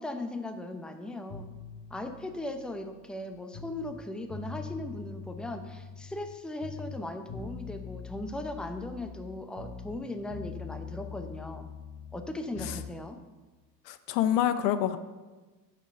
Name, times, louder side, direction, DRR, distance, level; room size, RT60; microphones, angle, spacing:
voice 1, 0.0-1.5 1.9-11.7 12.1-13.2, left 1 dB, ahead, 7 dB, 0.8 m, -38 dB
sound 1, 1.3-4.0 4.3-6.4 6.6-10.0 10.3-12.9, left 5 dB, 35° left, 1.2 m, -43 dB
voice 2, 13.9-15.0, left 11 dB, 70° left, 12 dB, 0.8 m, -26 dB
8.3 x 6.2 x 5.5 m, 1.2 s
hypercardioid pair, 70°, 50 cm